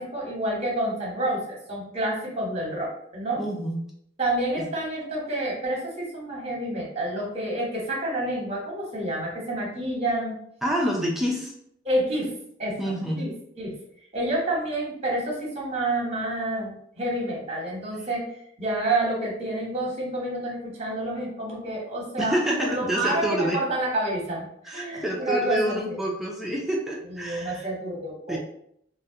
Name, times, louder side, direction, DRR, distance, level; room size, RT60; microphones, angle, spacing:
voice 1, 0.0-3.4 4.2-10.3 11.8-12.3 12.6-13.3 13.6-13.7 14.1-18.3 18.6-26.0 27.1-28.4, right 1 dB, 30° right, -3 dB, 1.0 m, -29 dB
voice 2, 3.4-3.8 4.6-4.7 10.6-11.5 12.8-13.2 22.2-23.6 24.6-27.7 28.3-28.4, equal, ahead, -2 dB, 0.3 m, -27 dB
3.4 x 2.0 x 2.7 m, 0.70 s
head